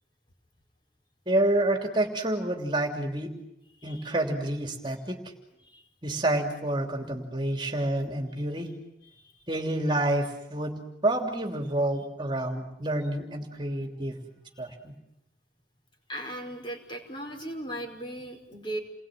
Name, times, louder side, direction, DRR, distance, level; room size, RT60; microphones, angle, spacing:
voice 1, 1.3-3.3 3.8-5.2 6.0-8.7 9.5-14.2 14.6-14.9, right 1 dB, 25° right, 3 dB, 3.1 m, -28 dB
voice 2, 3.8-4.1 5.6-5.8 7.5-7.7 9.1-9.3 14.6-14.7 16.1-18.8, right 1 dB, 30° left, 3 dB, 5.0 m, -38 dB
30.0 x 21.5 x 9.2 m, 0.85 s
head